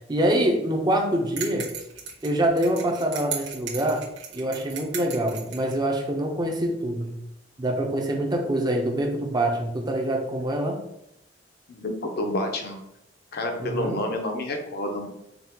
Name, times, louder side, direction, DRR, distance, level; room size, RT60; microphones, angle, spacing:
voice 1, 0.1-1.7 2.2-4.0 4.3-7.2 7.6-10.8 13.6-14.0, right 1 dB, 25° right, 1 dB, 0.7 m, -25 dB
sound 1, 1.4-5.8, right 6 dB, 85° right, 1.0 m, -36 dB
voice 2, 11.7-12.8 13.3-15.1, left 1 dB, 55° left, 3 dB, 0.7 m, -29 dB
5.3 x 2.5 x 2.9 m, 0.80 s
head